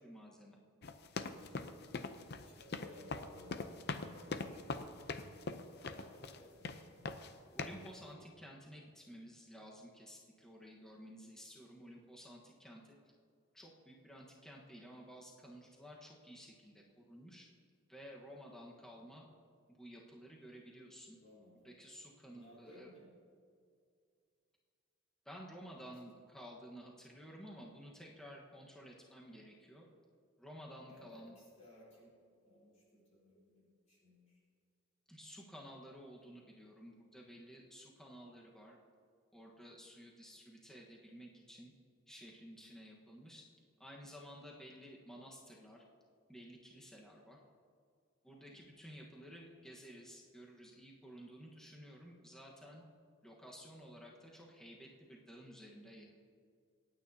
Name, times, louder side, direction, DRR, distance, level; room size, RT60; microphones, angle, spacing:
voice 1, 0.0-0.6 7.5-13.0 13.5-17.5 17.9-19.2 19.8-21.2 21.6-22.9 25.2-29.9 30.4-31.3 35.1-38.8 39.3-41.7 42.1-43.4 43.8-45.8 46.3-47.4 48.2-52.8 53.2-56.1, equal, 5° left, -3 dB, 1.3 m, -53 dB
sound 1, 0.8-6.4 6.6-7.3 7.6-7.9, left 3 dB, 50° left, 0.6 m, -42 dB
voice 2, 2.4-3.6 3.9-5.3 5.8-7.0 21.2-21.7 22.3-23.1 25.9-26.0 30.9-32.2 32.4-34.4 48.5-48.8, left 1 dB, 35° left, -7 dB, 3.8 m, -59 dB
26.5 x 9.3 x 2.8 m, 2.2 s
head